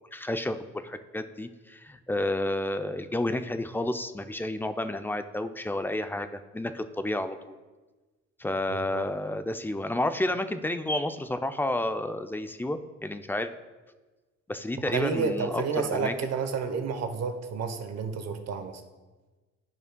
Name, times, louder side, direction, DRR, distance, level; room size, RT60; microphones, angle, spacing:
voice 1, 0.1-7.4 8.4-13.5 14.5-16.1, left 1 dB, 5° left, 9 dB, 0.3 m, -31 dB
voice 2, 8.7-9.0 14.9-18.8, right 5 dB, 60° right, 7 dB, 0.9 m, -30 dB
12.0 x 5.3 x 2.2 m, 1.2 s
cardioid pair, 90°, 30 cm